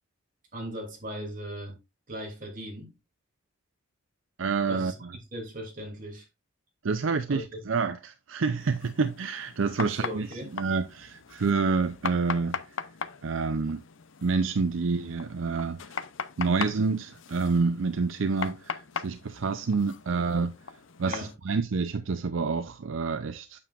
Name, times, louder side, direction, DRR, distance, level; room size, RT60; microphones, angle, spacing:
voice 1, 0.5-1.8 2.1-2.9 4.7-6.3 7.3-7.6 9.8-10.5 21.1-21.3, equal, 45° right, 2.9 m, -38 dB
voice 2, 4.4-5.2 6.8-12.8 13.2-13.8 14.2-15.9 16.4-20.5 21.0-23.6, right 4 dB, 75° right, 0.5 m, -28 dB
sound 1, 8.6-21.3, left 6 dB, 70° left, 0.6 m, -40 dB
8.5 x 7.0 x 2.4 m
head